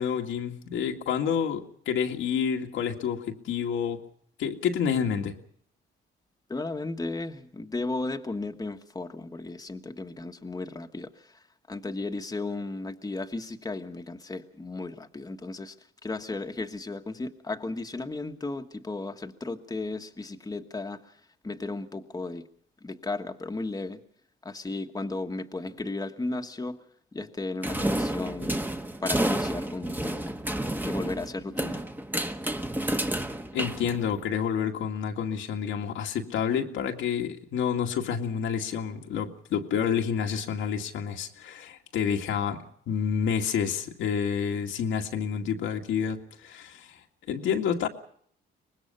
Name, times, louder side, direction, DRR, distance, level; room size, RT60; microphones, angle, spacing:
voice 1, 0.0-4.0 4.4-5.3 33.5-47.9, left 7 dB, 85° left, 3 dB, 2.1 m, -29 dB
voice 2, 6.5-11.1 11.7-15.7 16.0-21.0 21.4-22.5 22.8-24.0 24.4-26.8 27.1-28.6 29.0-30.3 30.8-31.8, left 2 dB, 20° left, 5 dB, 1.5 m, -34 dB
sound 1, 27.6-34.4, right 1 dB, 10° right, 1.4 m, -30 dB
24.5 x 20.0 x 5.5 m, 0.63 s
cardioid pair, 90°, 20 cm